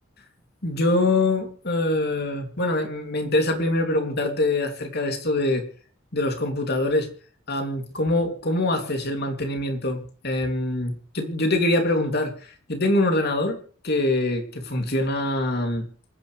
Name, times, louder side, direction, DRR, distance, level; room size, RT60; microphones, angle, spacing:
voice 1, 0.6-5.6 6.1-7.1 7.5-13.6 13.8-15.9, left 2 dB, 50° left, 4 dB, 3.0 m, -24 dB
27.0 x 10.0 x 3.4 m, 0.42 s
head